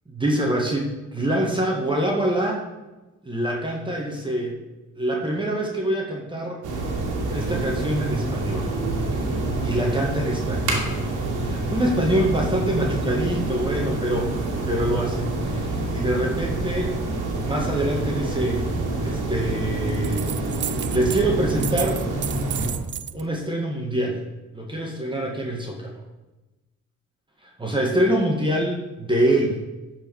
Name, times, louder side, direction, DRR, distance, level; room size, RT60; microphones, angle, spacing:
voice 1, 0.1-2.7 3.3-4.6 5.0-7.0 7.3-8.7 9.1-9.3 9.6-11.1 11.4-17.0 17.4-18.7 19.0-20.2 20.5-22.0 23.1-24.2 24.5-26.0 27.4-29.6, right 1 dB, 15° right, -1 dB, 1.8 m, -25 dB
sound 1, 6.6-22.7, right 2 dB, 90° right, 2.3 m, -27 dB
sound 2, 19.9-21.2 21.5-23.2, right 10 dB, 40° right, 0.4 m, -32 dB
11.5 x 4.9 x 4.7 m, 1.1 s
cardioid pair, 90°, 30 cm